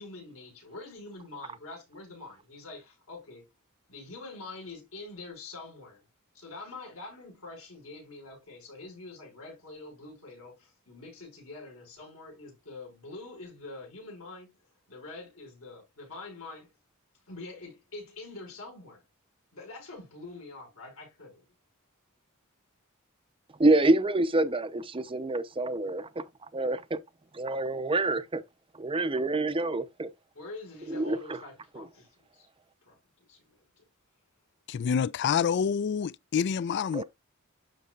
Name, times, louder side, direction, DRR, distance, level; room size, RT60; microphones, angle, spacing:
voice 1, 0.0-3.5 3.9-6.0 6.3-14.5 14.9-16.7 17.3-19.0 19.5-21.4 30.3-32.5 32.8-33.0 33.3-33.8, left 3 dB, 75° left, 5.4 m, -45 dB
voice 2, 23.6-26.2 26.5-27.0 27.3-28.4 28.8-30.1 30.9-31.2 31.7-31.8 36.9-37.0, right 2 dB, 25° right, 0.6 m, -27 dB
voice 3, 34.7-37.0, left 7 dB, 55° left, 0.3 m, -27 dB
12.0 x 4.2 x 2.4 m
head